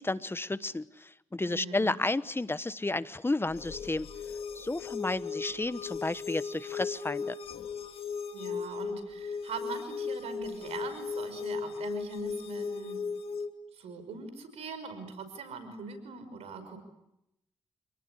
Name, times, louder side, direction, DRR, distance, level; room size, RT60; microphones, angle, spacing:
voice 1, 0.0-4.1 4.5-7.4, left 2 dB, 20° left, 15 dB, 1.2 m, -32 dB
voice 2, 1.4-1.9 8.3-13.0 13.7-16.8, right 4 dB, 80° right, 10 dB, 5.5 m, -42 dB
sound 1, 3.5-13.5, left 5 dB, 65° left, 2.7 m, -37 dB
29.0 x 19.0 x 9.9 m, 0.83 s
supercardioid pair, 45°, 10 cm